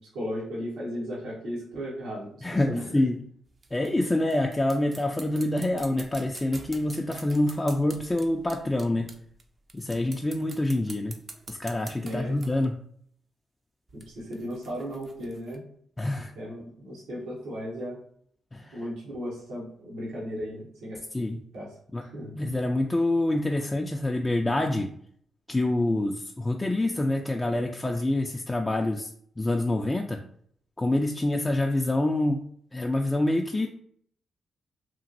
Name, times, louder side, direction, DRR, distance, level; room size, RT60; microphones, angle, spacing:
voice 1, 0.0-2.9 12.0-12.4 13.9-15.6 16.3-18.0 18.7-21.0 21.5-21.7 22.0-22.3, equal, 80° right, -6 dB, 1.0 m, -36 dB
voice 2, 2.4-3.2 3.7-9.1 9.7-11.2 11.5-12.7 16.0-16.3 18.5-18.8 21.1-21.4 21.9-22.0 22.4-24.9 25.5-29.1 29.4-30.2 30.8-32.4 32.7-33.7, left 1 dB, 25° left, 2 dB, 0.3 m, -26 dB
sound 1, 3.5-9.4 9.7-12.7 13.9-15.6, right 3 dB, 45° right, 0.5 m, -47 dB
3.0 x 2.5 x 2.6 m, 0.63 s
supercardioid pair, 45°, 0 cm